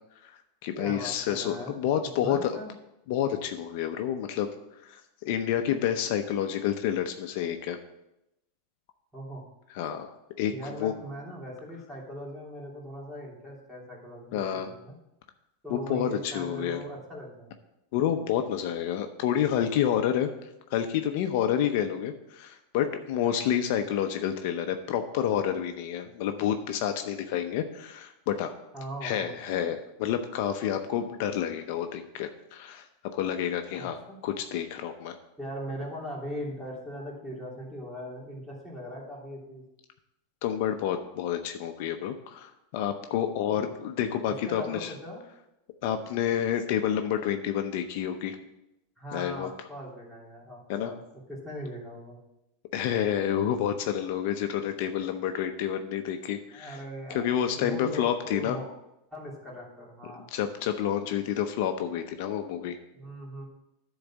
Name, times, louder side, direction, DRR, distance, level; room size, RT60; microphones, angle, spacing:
voice 1, 0.2-2.6 3.1-4.5 4.8-7.8 9.7-10.1 10.4-10.5 10.8-10.9 14.3-14.7 15.7-16.8 17.9-20.3 20.7-28.5 29.0-32.8 33.1-35.2 40.4-44.9 45.8-48.4 49.1-49.5 50.7-50.9 52.7-56.8 57.1-58.6 60.3-62.8, left 9 dB, 60° left, 7 dB, 0.7 m, -29 dB
voice 2, 0.8-1.7 2.2-2.7 9.1-9.4 10.5-15.0 15.6-17.5 21.4-21.6 23.2-23.5 28.7-29.3 33.7-34.2 35.4-39.6 44.5-45.2 49.0-51.0 51.3-52.2 56.5-58.7 59.1-60.3 62.9-63.4, equal, 5° right, -5 dB, 3.0 m, -40 dB
10.0 x 4.0 x 7.3 m, 0.90 s
supercardioid pair, 135°, 0 cm